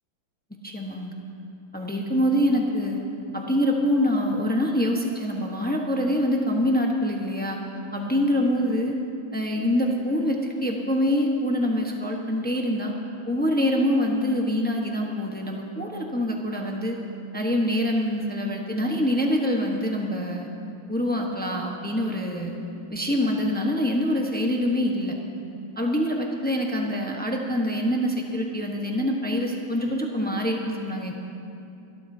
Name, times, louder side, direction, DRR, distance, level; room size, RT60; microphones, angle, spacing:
voice 1, 0.6-1.2 1.7-3.0 3.3-7.6 7.9-8.9 9.3-12.9 13.3-17.0 17.3-20.5 20.9-22.5 22.9-25.1 25.8-31.1, equal, 10° left, 0 dB, 0.5 m, -25 dB
26.5 x 13.0 x 2.8 m, 2.7 s
omnidirectional pair, 2.3 m